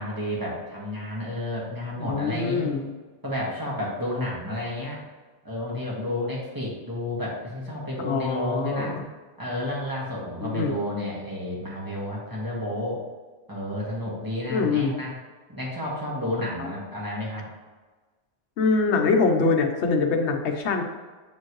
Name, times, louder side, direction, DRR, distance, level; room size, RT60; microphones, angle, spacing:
voice 1, 0.0-2.7 3.2-5.0 5.4-9.0 9.4-13.0 13.5-15.1 15.5-17.5, left 1 dB, 20° right, -5 dB, 1.7 m, -31 dB
voice 2, 2.0-2.9 8.0-8.9 10.4-10.7 14.5-15.0 16.6-16.7 18.6-20.8, left 4 dB, 80° left, 4 dB, 1.0 m, -24 dB
7.8 x 4.4 x 3.1 m, 1.3 s
omnidirectional pair, 1.2 m